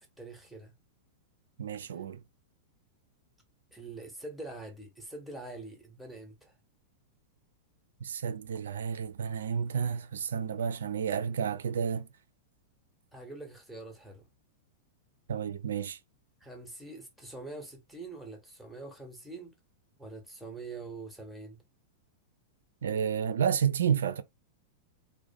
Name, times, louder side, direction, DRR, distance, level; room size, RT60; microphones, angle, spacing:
voice 1, 0.2-0.7 3.7-6.6 13.1-14.3 16.4-19.5 20.0-21.6, right 3 dB, ahead, 0.8 m, -44 dB
voice 2, 1.6-2.2 8.0-12.1 15.3-16.0 22.8-24.2, right 7 dB, 65° right, 0.3 m, -31 dB
2.4 x 2.1 x 2.6 m
figure-of-eight pair, 95°, 0 cm